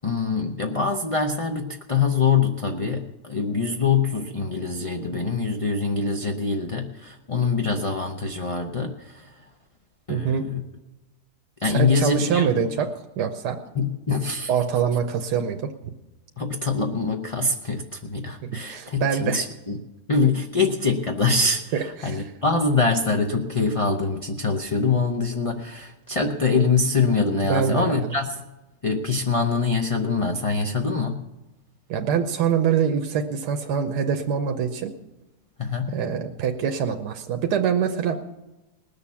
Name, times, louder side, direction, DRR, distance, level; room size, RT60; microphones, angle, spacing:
voice 1, 0.0-9.2 10.1-10.6 11.6-12.6 13.8-14.5 16.4-19.8 20.1-28.4 28.8-31.2 35.6-36.0, left 4 dB, 35° left, 3 dB, 0.6 m, -24 dB
voice 2, 10.1-10.4 11.6-12.9 13.2-13.6 14.5-15.7 18.4-19.4 21.7-22.3 27.4-28.1 31.9-34.9 35.9-38.2, right 7 dB, 85° right, 5 dB, 1.4 m, -24 dB
19.5 x 6.9 x 7.0 m, 1.0 s
omnidirectional pair, 1.7 m